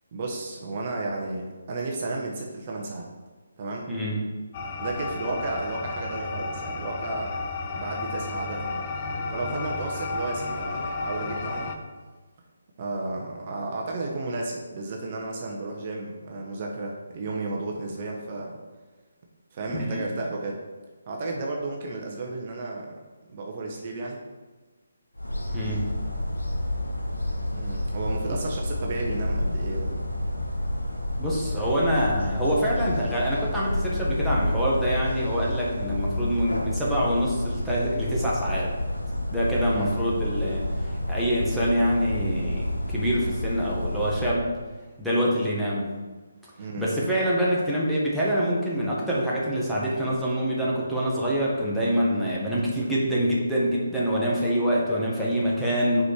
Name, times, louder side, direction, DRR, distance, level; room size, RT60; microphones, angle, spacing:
voice 1, 0.1-3.1 3.6-3.9 4.8-7.5 7.7-8.8 9.3-11.7 12.8-18.6 19.5-20.6 21.1-23.0 23.3-24.2 27.5-30.0 39.7-39.9 46.6-46.9, right 2 dB, 35° right, -1 dB, 1.1 m, -33 dB
sound 1, 4.5-11.8, left 3 dB, 30° left, 0.7 m, -32 dB
voice 2, 19.7-20.0 25.5-25.9 31.2-38.7 39.3-44.5 45.0-45.9 46.8-56.0, equal, ahead, -8 dB, 1.5 m, -25 dB
sound 2, 25.2-44.4, left 1 dB, 85° left, 1.5 m, -29 dB
6.8 x 5.1 x 4.5 m, 1.3 s
figure-of-eight pair, 145°, 0 cm